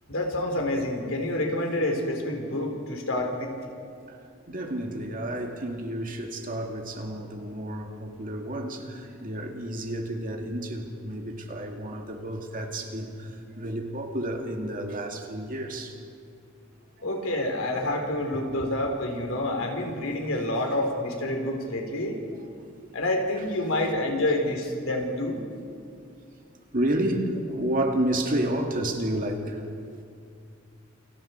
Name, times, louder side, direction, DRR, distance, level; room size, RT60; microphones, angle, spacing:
voice 1, 0.1-3.5 17.0-22.2 22.9-25.4, left 1 dB, 70° left, 3.8 m, -28 dB
voice 2, 4.0-16.0 18.3-18.7 19.6-19.7 20.3-20.7 22.2-22.4 26.7-30.0, right 1 dB, 40° right, 2.2 m, -31 dB
28.5 x 25.0 x 4.5 m
head